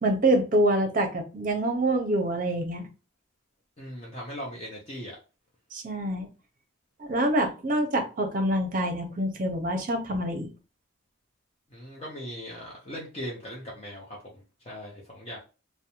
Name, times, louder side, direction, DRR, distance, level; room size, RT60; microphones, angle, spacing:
voice 1, 0.0-2.9 5.7-6.3 7.0-10.5, right 1 dB, 40° right, 4 dB, 0.6 m, -26 dB
voice 2, 3.8-5.2 11.7-15.4, equal, 30° left, -4 dB, 0.6 m, -39 dB
2.5 x 2.1 x 2.9 m, 0.32 s
head